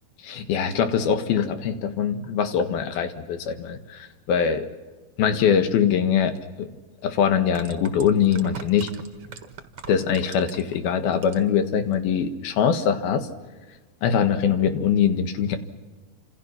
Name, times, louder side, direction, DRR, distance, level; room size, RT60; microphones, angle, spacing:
voice 1, 0.2-4.7 5.2-6.3 6.6-6.7 7.0-8.9 9.9-13.3 14.0-15.6, left 7 dB, 75° left, 8 dB, 3.5 m, -22 dB
sound 1, 6.4-6.5 7.3-10.8 11.1-11.6 11.9-12.0, right 7 dB, 50° right, 1.9 m, -41 dB
30.0 x 27.0 x 5.9 m, 1.3 s
omnidirectional pair, 4.4 m